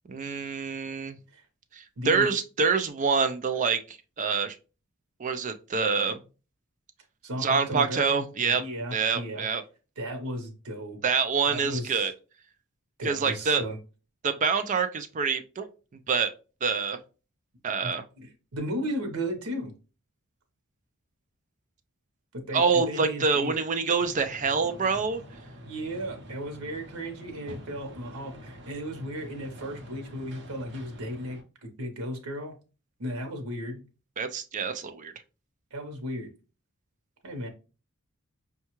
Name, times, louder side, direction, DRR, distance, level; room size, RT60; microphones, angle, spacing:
voice 1, 0.1-1.2 1.7-4.6 5.2-6.2 7.4-8.6 8.9-9.6 11.0-12.1 13.0-13.6 14.2-15.7 16.1-16.3 16.6-17.0 17.6-18.0 22.5-25.2 34.2-35.1, right 5 dB, 35° right, 8 dB, 0.4 m, -26 dB
voice 2, 2.0-2.3 7.2-9.4 10.0-11.0 11.5-12.0 13.0-13.8 17.8-17.9 18.2-19.7 22.3-23.6 25.6-31.4 31.8-32.6 33.0-33.8 35.7-36.3 37.2-37.5, equal, 85° right, 4 dB, 0.9 m, -35 dB
sound 1, 24.0-31.4, equal, 55° right, 0.8 m, -46 dB
5.4 x 2.3 x 2.9 m, 0.34 s
head